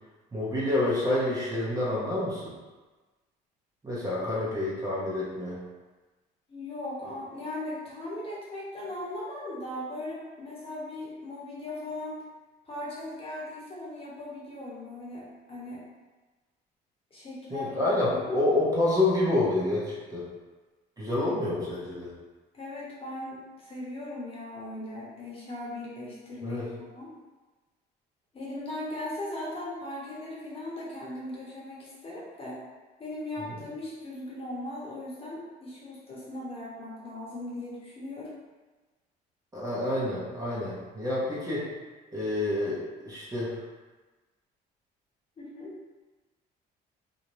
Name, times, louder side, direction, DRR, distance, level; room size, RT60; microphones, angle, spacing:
voice 1, 0.3-2.5 3.8-5.6 17.5-20.3 21.0-22.1 26.4-26.7 39.5-41.7 42.1-43.5, left 2 dB, 20° right, -7 dB, 0.8 m, -28 dB
voice 2, 6.5-12.2 12.6-15.8 17.1-18.2 22.5-27.1 28.3-32.6 33.0-38.3 45.4-45.7, left 1 dB, 35° left, -6 dB, 0.9 m, -38 dB
2.6 x 2.1 x 3.0 m, 1.2 s
cardioid pair, 110°, 17 cm